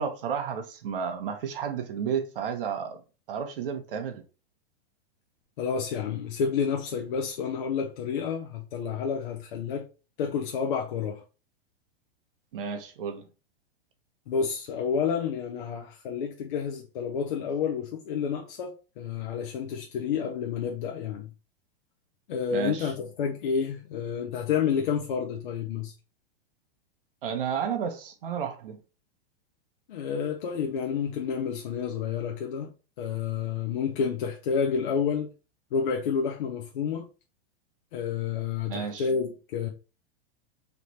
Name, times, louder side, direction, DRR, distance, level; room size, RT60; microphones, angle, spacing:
voice 1, 0.0-3.0 3.3-4.2 12.5-13.2 22.5-22.9 27.2-28.8 38.7-39.1, right 7 dB, 60° right, 0.9 m, -32 dB
voice 2, 5.6-9.9 10.2-11.2 14.3-21.3 22.3-25.9 29.9-32.7 33.0-35.3 35.7-37.1 37.9-39.7, left 6 dB, 50° left, 0.7 m, -29 dB
3.3 x 3.1 x 4.1 m
supercardioid pair, 175°, 32 cm